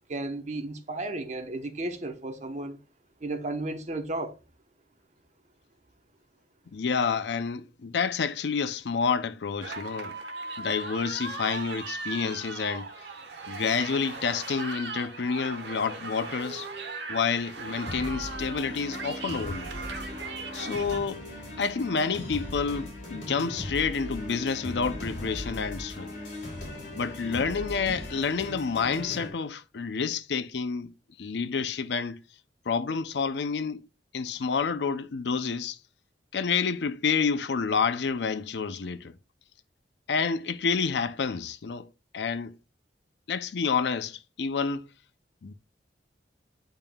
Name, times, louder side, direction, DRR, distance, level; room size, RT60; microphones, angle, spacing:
voice 1, 0.1-2.8 3.2-4.4, right 2 dB, 40° right, 0.9 m, -33 dB
voice 2, 6.7-10.2 10.6-12.9 13.5-16.7 17.1-19.7 20.5-21.3 21.6-26.1 27.0-30.9 31.2-32.2 32.7-33.8 34.1-35.8 36.3-39.1 40.1-41.9 42.1-42.6 43.3-44.9 45.4-45.5, left 5 dB, 70° left, 0.5 m, -29 dB
sound 1, 9.6-21.0, right 3 dB, 70° right, 1.1 m, -38 dB
sound 2, 17.9-29.3, left 1 dB, 50° left, 3.5 m, -38 dB
8.8 x 5.3 x 2.3 m
head